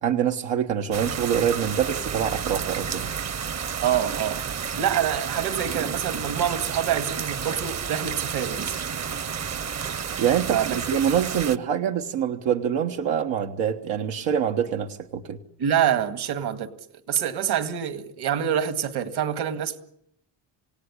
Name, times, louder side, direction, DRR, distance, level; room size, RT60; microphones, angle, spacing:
voice 1, 0.0-3.1 10.2-15.4, right 8 dB, 85° right, 1.5 m, -25 dB
sound 1, 0.9-11.6, right 7 dB, 35° right, 1.0 m, -31 dB
voice 2, 3.8-8.8 10.5-10.8 15.6-16.7 17.1-19.8, right 9 dB, 60° right, 2.1 m, -26 dB
28.0 x 17.5 x 9.9 m
cardioid pair, 110°, 44 cm